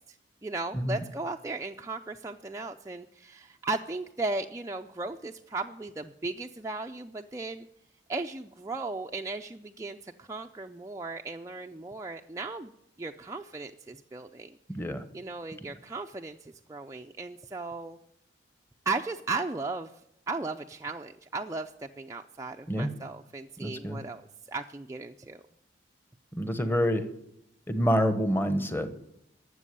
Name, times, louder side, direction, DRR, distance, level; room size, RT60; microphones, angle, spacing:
voice 1, 0.4-7.7 8.1-12.7 13.0-14.5 15.1-18.0 18.9-19.9 20.3-24.2 24.5-25.4, right 3 dB, 15° right, 3 dB, 0.4 m, -36 dB
voice 2, 23.6-24.0 26.3-27.0 27.7-28.9, equal, 10° left, 9 dB, 1.1 m, -27 dB
12.5 x 7.5 x 9.9 m, 0.78 s
head